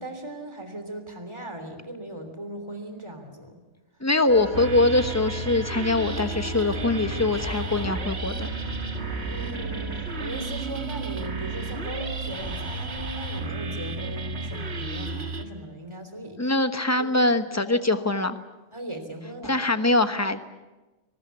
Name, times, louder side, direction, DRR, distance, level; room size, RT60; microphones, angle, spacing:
voice 1, 0.0-3.6 9.2-16.5 17.0-17.3 18.7-19.6, right 1 dB, 25° right, 7 dB, 3.3 m, -38 dB
voice 2, 4.0-8.5 16.4-18.4 19.4-20.4, left 2 dB, 15° left, 9 dB, 1.1 m, -23 dB
sound 1, 4.3-12.9, equal, 65° left, 4.2 m, -39 dB
sound 2, 4.5-15.4, right 3 dB, 65° right, 2.0 m, -33 dB
22.5 x 19.5 x 8.2 m, 1.1 s
omnidirectional pair, 1.2 m